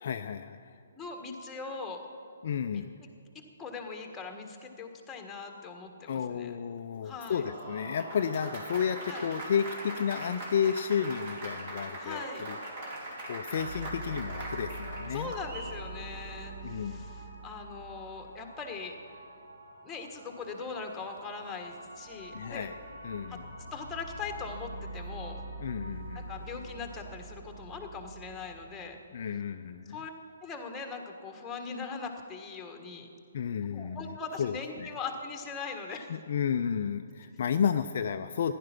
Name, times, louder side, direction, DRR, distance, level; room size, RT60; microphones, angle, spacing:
voice 1, 0.0-0.8 2.4-3.0 6.1-12.6 12.8-13.0 13.3-15.3 16.6-17.0 22.3-22.8 23.0-23.5 25.6-26.3 29.1-30.0 33.3-34.9 35.9-38.5, left 7 dB, 50° left, 8 dB, 0.5 m, -32 dB
voice 2, 0.9-2.0 2.7-2.8 3.6-6.5 7.0-7.4 9.1-9.2 12.0-12.4 15.1-19.0 19.8-22.7 23.3-23.4 23.7-25.4 26.1-29.0 29.9-30.1 30.4-33.1 33.6-36.1, left 4 dB, 10° left, 4 dB, 1.5 m, -40 dB
Applause, 7.0-15.8, right 1 dB, 40° right, 3.1 m, -41 dB
sound 1, 13.5-28.8, right 2 dB, 80° right, 4.5 m, -44 dB
15.0 x 11.0 x 6.0 m, 2.5 s
figure-of-eight pair, 130°, 0 cm